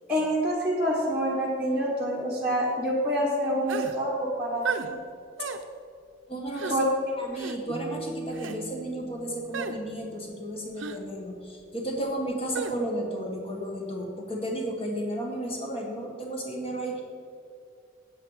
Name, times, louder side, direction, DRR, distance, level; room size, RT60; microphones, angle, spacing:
voice 1, 0.1-4.9 6.7-6.8, equal, 5° right, -7 dB, 1.4 m, -27 dB
sound 1, 3.7-4.0 4.6-4.9 5.4-5.6 6.5-6.8 7.4-7.6 8.3-8.6 9.5-9.8 10.8-11.0 12.5-12.8, right 5 dB, 70° right, 0.6 m, -33 dB
voice 2, 6.3-6.9 7.2-17.0, right 1 dB, 30° left, 0 dB, 1.7 m, -33 dB
sound 2, 7.7-10.8, right 1 dB, 30° right, 0.9 m, -42 dB
9.3 x 8.8 x 4.9 m, 2.4 s
head